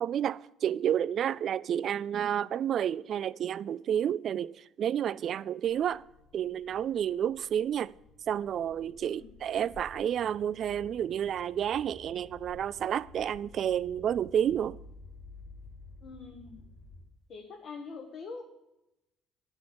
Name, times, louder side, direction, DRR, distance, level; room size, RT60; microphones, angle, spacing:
voice 1, 0.0-6.0 6.3-7.9 8.3-14.8, right 9 dB, 55° right, 0.3 m, -30 dB
sound 1, 5.7-17.0, left 3 dB, 40° left, 2.8 m, -53 dB
voice 2, 9.0-9.4 16.0-16.6 17.3-18.4, left 4 dB, 55° left, 1.2 m, -44 dB
10.0 x 6.2 x 7.4 m
cardioid pair, 100°, 0 cm